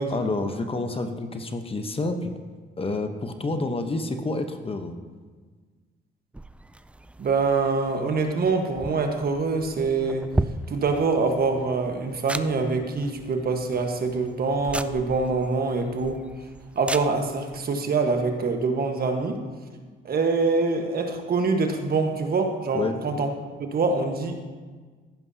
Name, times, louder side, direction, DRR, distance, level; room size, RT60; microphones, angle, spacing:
voice 1, 0.1-2.3 2.8-4.9 22.7-23.0, left 2 dB, 30° left, 7 dB, 0.9 m, -28 dB
sound 1, 6.3-17.6, right 1 dB, 5° right, 0.3 m, -37 dB
voice 2, 7.2-10.3 10.7-16.3 16.7-19.4 20.0-23.3 23.6-24.5, right 4 dB, 50° right, 5 dB, 1.3 m, -25 dB
15.0 x 11.0 x 2.8 m, 1.5 s
cardioid pair, 90°, 20 cm